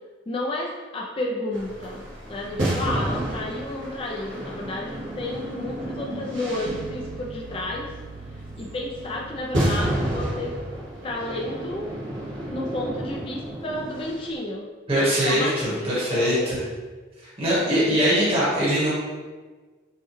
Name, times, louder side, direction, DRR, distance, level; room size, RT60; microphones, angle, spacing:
voice 1, 0.3-7.9 8.6-10.5 11.0-11.8 12.5-16.6, left 1 dB, 30° left, -2 dB, 0.3 m, -31 dB
sound 1, 1.5-14.4, right 1 dB, 65° right, 1.2 m, -31 dB
sound 2, 6.7-12.7, right 3 dB, 45° right, 0.4 m, -44 dB
voice 2, 14.9-16.6 17.4-18.9, equal, 30° right, -9 dB, 1.1 m, -22 dB
5.3 x 2.2 x 3.1 m, 1.4 s
head